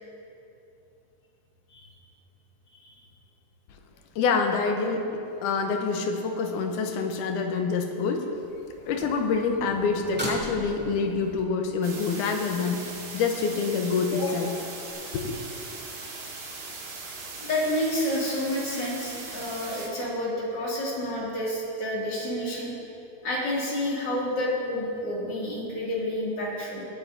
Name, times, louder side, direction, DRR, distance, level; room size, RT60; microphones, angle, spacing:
voice 1, 4.2-5.1 5.4-8.3 8.9-12.8 13.1-14.7 15.1-15.4, left 5 dB, 75° left, 4 dB, 2.2 m, -26 dB
sound 1, 8.3-11.4 14.9-15.0, equal, 5° right, 0.9 m, -38 dB
sound 2, 11.8-19.9, right 3 dB, 65° right, 3.0 m, -39 dB
voice 2, 17.4-22.7 23.2-26.8, left 1 dB, 35° left, -6 dB, 2.6 m, -29 dB
20.5 x 9.2 x 2.7 m, 2.8 s
omnidirectional pair, 3.9 m